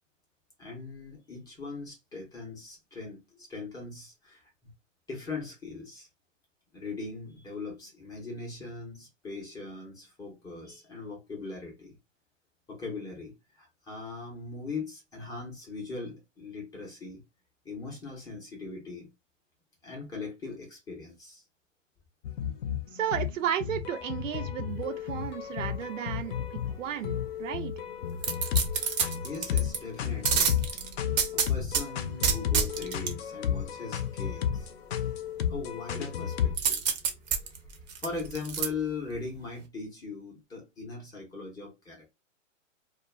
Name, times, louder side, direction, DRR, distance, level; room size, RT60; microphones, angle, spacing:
voice 1, 0.6-4.7 5.1-6.1 6.7-11.9 12.7-17.2 17.6-19.1 19.8-21.4 29.2-30.6 31.3-34.9 35.5-42.1, left 4 dB, 10° left, 0.6 m, -40 dB
sound 1, 22.2-36.6, left 9 dB, 55° left, 0.6 m, -33 dB
voice 2, 22.9-27.7, right 10 dB, 75° right, 0.7 m, -33 dB
sound 2, 28.2-29.8 30.2-31.8 32.2-33.1 36.6-38.7 39.1-39.2, right 6 dB, 35° right, 0.6 m, -27 dB
2.3 x 2.2 x 3.1 m
hypercardioid pair, 140°, 38 cm